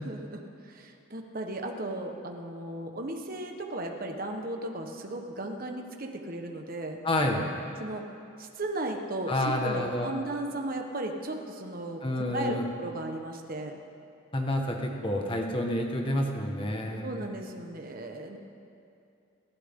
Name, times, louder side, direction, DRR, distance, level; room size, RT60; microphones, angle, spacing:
voice 1, 0.0-7.0 7.8-8.0 8.4-12.0 12.3-13.8 17.0-18.4, right 1 dB, 45° right, 3 dB, 1.3 m, -36 dB
voice 2, 7.0-7.5 9.3-10.1 12.0-12.6 14.3-17.3, left 1 dB, 25° left, 1 dB, 1.6 m, -29 dB
29.5 x 11.5 x 3.8 m, 2.6 s
head